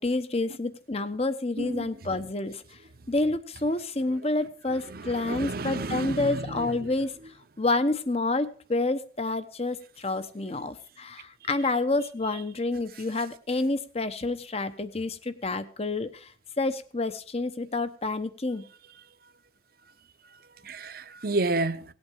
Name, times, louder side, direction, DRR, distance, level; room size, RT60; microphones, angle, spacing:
voice 1, 0.0-2.6 3.1-7.1 7.6-16.3 16.6-18.6, left 2 dB, 35° left, 1.0 m, -28 dB
voice 2, 4.9-6.4 20.7-21.8, right 2 dB, 55° right, 0.9 m, -30 dB
18.0 x 8.7 x 4.7 m
head